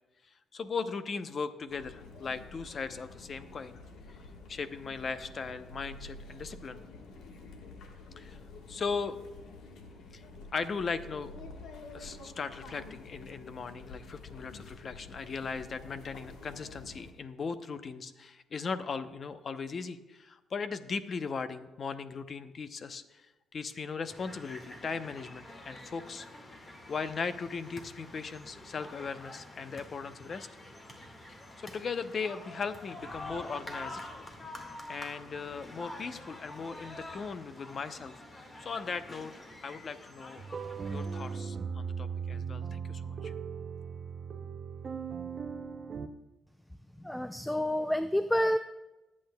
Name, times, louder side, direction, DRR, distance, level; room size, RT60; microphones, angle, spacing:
voice 1, 0.5-3.8 4.1-4.2 4.5-6.8 8.2-8.4 8.7-9.2 10.1-10.2 10.5-11.3 11.9-23.3 23.5-26.3 26.9-30.5 31.3-34.1 34.9-38.2 38.6-40.4 40.9-43.3, left 5 dB, 45° left, 11 dB, 0.7 m, -38 dB
sound 1, 1.7-17.1, left 3 dB, 85° left, 1.3 m, -49 dB
sound 2, 24.1-41.4, left 1 dB, 30° left, 1.7 m, -47 dB
sound 3, 40.4-46.1, right 6 dB, 45° right, 0.6 m, -38 dB
voice 2, 47.0-48.6, equal, 5° left, 10 dB, 0.3 m, -28 dB
21.0 x 8.6 x 2.3 m, 1.1 s
cardioid pair, 90°, 0 cm